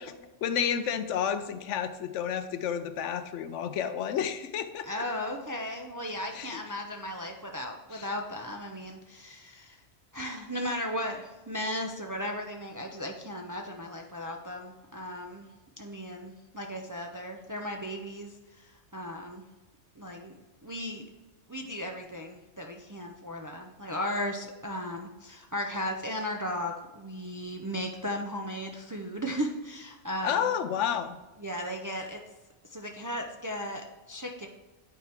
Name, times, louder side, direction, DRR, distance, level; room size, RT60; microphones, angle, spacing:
voice 1, 0.0-5.0 6.3-6.6 7.9-8.1 30.2-31.2, left 8 dB, 90° left, 11 dB, 0.9 m, -31 dB
voice 2, 4.9-9.8 10.1-15.5 15.8-19.5 20.0-21.0 21.5-30.5 31.4-32.2 32.7-34.5, equal, 25° right, 2 dB, 0.4 m, -36 dB
9.1 x 4.5 x 3.5 m, 1.1 s
omnidirectional pair, 1.2 m